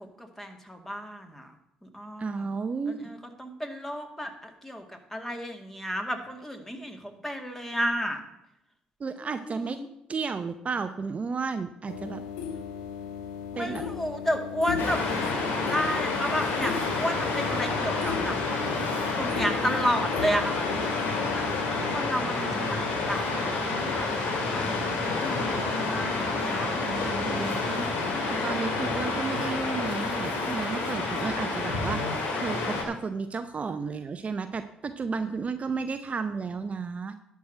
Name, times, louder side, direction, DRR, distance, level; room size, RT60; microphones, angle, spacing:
voice 1, 0.0-1.5 1.8-2.5 2.9-8.2 9.2-9.9 13.5-18.4 19.2-21.4 21.9-24.7 25.2-27.4 28.1-28.7, equal, 10° left, 5 dB, 2.0 m, -33 dB
voice 2, 2.2-3.1 9.0-9.8 10.1-12.2 13.6-13.8 26.8-32.0 32.3-37.2, right 5 dB, 40° right, 9 dB, 0.6 m, -33 dB
sound 1, 11.9-22.0, left 7 dB, 85° left, 0.9 m, -36 dB
Waves surf, 14.8-32.8, left 3 dB, 70° left, 2.2 m, -29 dB
11.5 x 4.8 x 7.6 m, 0.78 s
hypercardioid pair, 50°, 4 cm